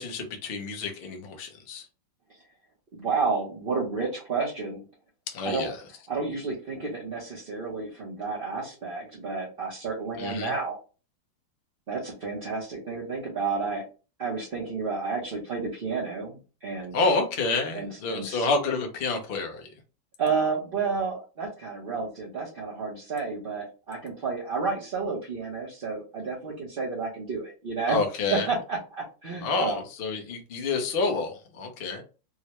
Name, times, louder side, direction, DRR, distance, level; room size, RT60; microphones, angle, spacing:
voice 1, 0.0-1.9 5.3-5.8 10.2-10.5 16.9-19.7 27.9-28.5 29.4-32.0, left 3 dB, 65° left, 4 dB, 0.5 m, -28 dB
voice 2, 2.9-4.8 5.4-5.7 6.1-10.8 11.9-13.8 14.2-17.0 17.7-18.5 20.2-28.0 28.5-29.8, right 4 dB, 45° right, -5 dB, 0.7 m, -31 dB
3.7 x 2.2 x 2.9 m, 0.33 s
omnidirectional pair, 2.0 m